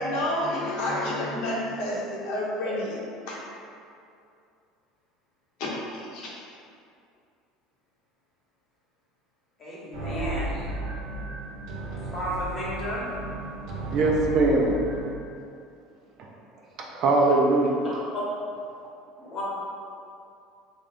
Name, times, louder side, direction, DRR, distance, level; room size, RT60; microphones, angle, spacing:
voice 1, 0.0-3.0 3.3-3.4 5.6-6.3, left 1 dB, 65° left, -5 dB, 0.8 m, -29 dB
voice 2, 9.6-10.6 12.1-13.1 17.8-18.2 19.2-19.4, equal, 30° left, -6 dB, 1.0 m, -33 dB
sound 1, 9.9-15.1, right 2 dB, 65° right, 0.9 m, -34 dB
voice 3, 13.9-14.8 16.2-16.3 16.9-17.7, right 2 dB, 45° right, -1 dB, 0.5 m, -21 dB
3.5 x 2.6 x 3.4 m, 2.5 s
cardioid pair, 155°, 0 cm